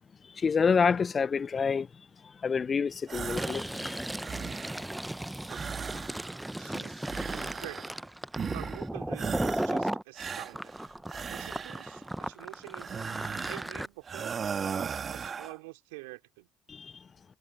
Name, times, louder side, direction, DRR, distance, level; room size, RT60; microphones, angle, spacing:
voice 1, 0.4-1.9 2.4-4.0 16.7-16.9, left 5 dB, 35° left, 0.8 m, -27 dB
sound 1, 3.1-3.7 4.0-4.9 5.5-6.5 7.0-8.0 8.3-8.9 9.1-9.8 10.2-12.0 12.8-13.7 14.1-15.6, right 6 dB, 40° right, 1.6 m, -37 dB
Fill (with liquid), 3.2-10.0 10.5-13.9, right 1 dB, 5° right, 0.8 m, -36 dB
voice 2, 6.6-7.9 8.5-10.7 11.3-14.6 15.1-16.5, right 25 dB, 75° right, 3.7 m, -47 dB
hypercardioid pair, 55°, 0 cm